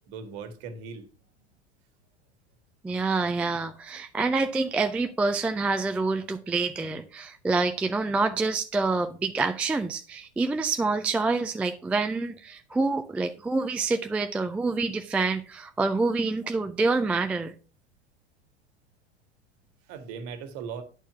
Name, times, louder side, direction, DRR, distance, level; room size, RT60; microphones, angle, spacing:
voice 1, 0.1-1.1 19.9-20.8, right 6 dB, 45° right, 1.7 m, -38 dB
voice 2, 2.8-17.5, right 3 dB, 5° right, 0.3 m, -27 dB
10.5 x 4.5 x 5.6 m
figure-of-eight pair, 85°, 34 cm